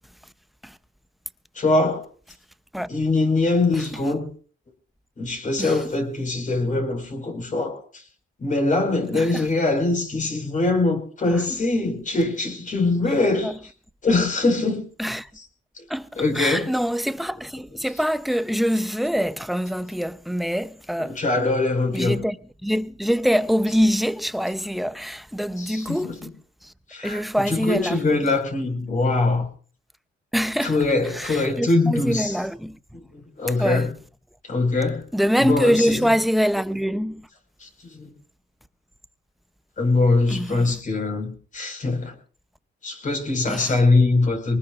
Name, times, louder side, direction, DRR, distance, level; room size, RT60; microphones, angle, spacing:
voice 1, 1.6-2.0 2.9-4.3 5.2-8.0 8.4-13.5 14.0-14.8 15.8-15.9 16.2-16.7 21.0-22.2 25.6-26.3 26.9-29.5 30.6-32.4 32.9-33.9 34.4-35.0 35.4-36.1 37.6-38.1 39.8-42.2 42.8-44.6, left 2 dB, 40° left, 5.2 m, -23 dB
voice 2, 9.1-9.5 11.3-11.4 13.4-13.6 15.0-15.3 15.9-21.2 21.9-22.4 22.6-26.2 26.6-26.7 27.0-28.2 30.3-30.8 31.1-33.0 33.6-33.9 35.1-37.3 40.3-40.8 43.5-43.8, equal, ahead, 0.7 m, -24 dB
24.0 x 19.5 x 2.5 m
cardioid pair, 90°, 20 cm